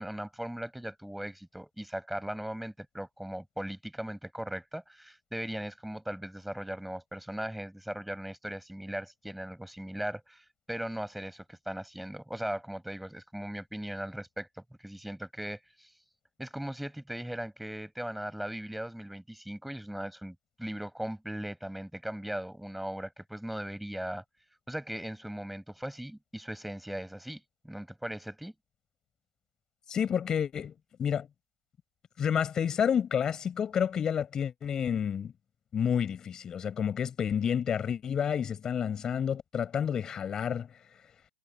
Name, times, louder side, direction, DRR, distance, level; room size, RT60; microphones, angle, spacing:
voice 1, 0.0-14.5 14.8-15.9 16.4-24.2 24.7-28.5, right 1 dB, ahead, 5.7 m, -38 dB
voice 2, 29.9-30.7 31.0-31.3 32.2-35.3 35.7-40.7, left 8 dB, 20° left, 5.4 m, -29 dB
hypercardioid pair, 135°, 3 cm